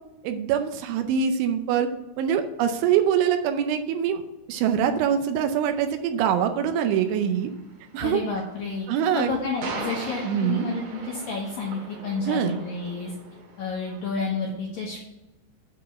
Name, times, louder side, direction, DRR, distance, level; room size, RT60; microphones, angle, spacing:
voice 1, 0.2-1.9 2.2-4.2 4.5-7.5 7.9-8.2 8.9-9.3 10.2-10.7 12.3-12.6, right 8 dB, 80° right, 7 dB, 2.9 m, -24 dB
sound 1, 6.8-14.2, right 3 dB, 65° right, 3.2 m, -40 dB
voice 2, 8.0-13.1 13.6-15.0, left 4 dB, 75° left, -3 dB, 2.1 m, -30 dB
8.4 x 4.6 x 7.0 m, 1.0 s
omnidirectional pair, 5.6 m